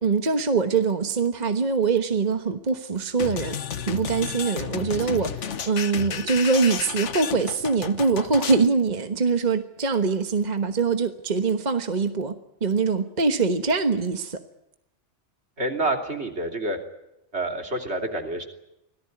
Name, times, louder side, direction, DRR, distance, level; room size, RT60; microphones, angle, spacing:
voice 1, 0.0-14.4, right 4 dB, 40° right, 7 dB, 1.4 m, -23 dB
sound 1, 3.2-8.7, left 7 dB, 75° left, 1.4 m, -32 dB
voice 2, 15.6-16.8 17.3-18.5, right 2 dB, 60° right, 3 dB, 3.5 m, -28 dB
25.5 x 17.5 x 9.7 m, 0.88 s
omnidirectional pair, 1.2 m